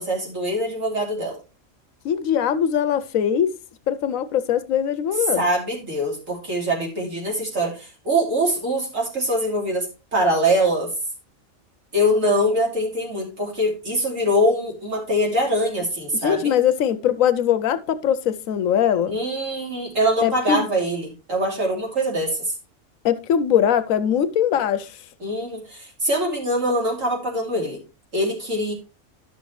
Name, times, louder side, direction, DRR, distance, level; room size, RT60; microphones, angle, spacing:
voice 1, 0.0-1.4 5.4-9.9 10.1-10.9 11.9-16.5 19.1-22.5 25.2-27.8 28.1-28.7, equal, 65° right, 3.3 m, -23 dB
voice 2, 2.0-3.5 3.9-5.5 16.1-19.2 20.2-20.7 23.0-24.9, left 9 dB, 75° left, 1.0 m, -21 dB
11.5 x 6.4 x 3.1 m
omnidirectional pair, 1.5 m